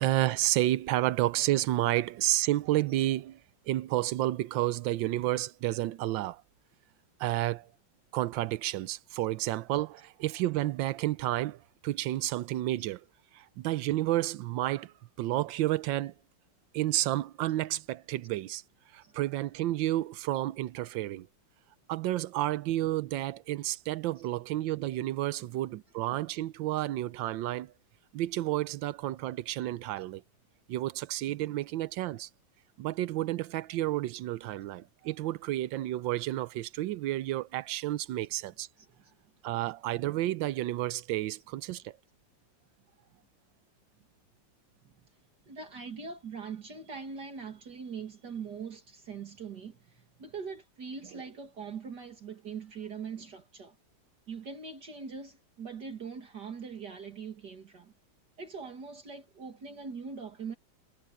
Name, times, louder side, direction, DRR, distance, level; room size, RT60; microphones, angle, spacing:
voice 1, 0.0-3.4 3.7-6.4 7.2-7.7 8.1-13.0 13.3-16.1 16.7-18.6 18.9-21.3 21.9-27.7 28.1-30.2 30.7-32.3 32.8-38.7 39.4-41.9, right 15 dB, 90° right, 1.4 m, -31 dB
voice 2, 38.8-39.1 44.8-44.9 45.5-53.8 54.3-57.9 58.4-60.6, right 5 dB, 60° right, 2.8 m, -42 dB
omnidirectional pair, 2.0 m